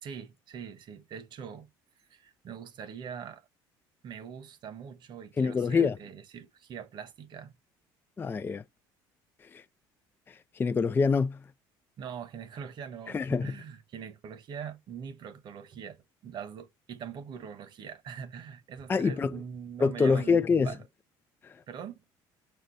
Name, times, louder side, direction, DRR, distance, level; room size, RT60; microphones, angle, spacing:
voice 1, 0.0-1.7 2.1-3.4 4.0-7.5 12.0-20.8 21.7-22.0, right 7 dB, 55° right, 1.3 m, -43 dB
voice 2, 5.4-6.0 8.2-8.6 9.5-9.6 10.3-11.4 13.1-13.5 18.9-19.3 19.8-20.7 21.4-21.6, left 5 dB, 20° left, 0.4 m, -26 dB
6.8 x 3.7 x 3.9 m
cardioid pair, 105°, 9 cm